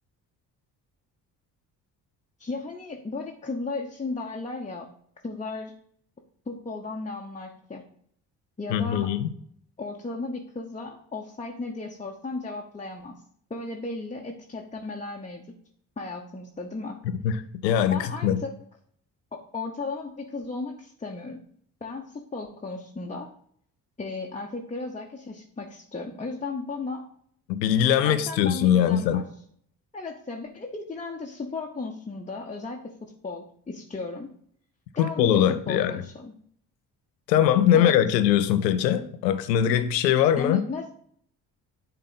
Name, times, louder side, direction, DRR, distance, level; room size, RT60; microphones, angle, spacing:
voice 1, 2.4-4.9 5.2-5.7 6.5-7.8 8.6-9.1 9.8-13.2 13.5-15.5 16.0-17.0 17.9-18.5 19.3-21.4 21.8-23.3 24.0-27.1 28.0-29.2 29.9-34.3 34.9-36.3 37.7-38.2 40.4-40.9, left 3 dB, 15° left, 0.9 m, -35 dB
voice 2, 8.7-9.3 17.2-18.4 27.5-29.3 35.0-35.9 37.3-40.6, left 10 dB, 80° left, 0.6 m, -22 dB
10.5 x 3.7 x 4.0 m
figure-of-eight pair, 45°, 49 cm